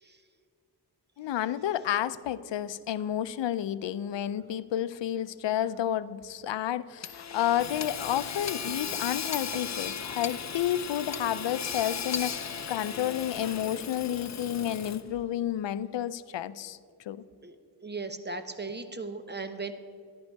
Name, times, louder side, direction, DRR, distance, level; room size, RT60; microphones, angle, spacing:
voice 1, 1.2-16.8 17.1-17.2, left 11 dB, 85° left, 16 dB, 0.5 m, -31 dB
Hammer / Sawing, 7.0-15.2, left 6 dB, 40° left, 0.6 m, -36 dB
voice 2, 17.8-19.7, right 3 dB, 25° right, 9 dB, 0.8 m, -37 dB
13.5 x 10.5 x 4.6 m, 2.3 s
wide cardioid pair, 90°, 42 cm